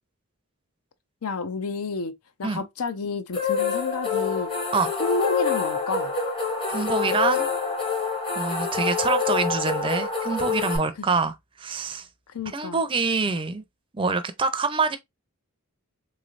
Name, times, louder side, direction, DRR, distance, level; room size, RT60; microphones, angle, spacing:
voice 1, 1.2-4.5 5.0-6.1 11.0-11.1 12.3-12.8, left 3 dB, 80° left, 0.6 m, -30 dB
sound 1, 3.3-10.8, left 5 dB, 25° left, 0.7 m, -26 dB
voice 2, 6.7-7.5 8.4-12.1 12.5-13.6 13.9-15.0, right 4 dB, 25° right, 0.4 m, -25 dB
3.7 x 3.2 x 2.4 m
head